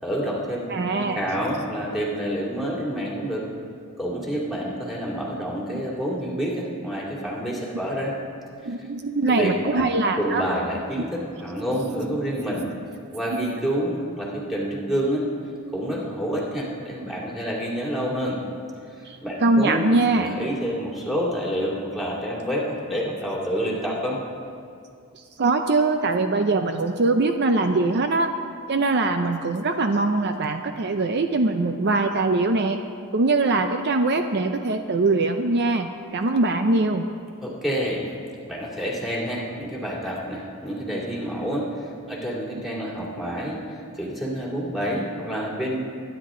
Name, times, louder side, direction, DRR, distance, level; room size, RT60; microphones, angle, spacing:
voice 1, 0.0-0.6 0.9-3.5 4.0-8.1 8.8-8.9 9.2-12.7 13.1-15.3 15.7-18.4 18.9-19.8 20.1-24.2 37.4-38.1 38.5-45.8, equal, ahead, -5 dB, 2.6 m, -28 dB
voice 2, 0.7-1.2 5.7-5.8 8.7-10.4 13.4-13.5 19.0-20.4 25.1-28.3 28.7-32.8 33.1-37.0, right 3 dB, 50° right, 6 dB, 0.5 m, -22 dB
22.5 x 10.5 x 3.8 m, 2.4 s
head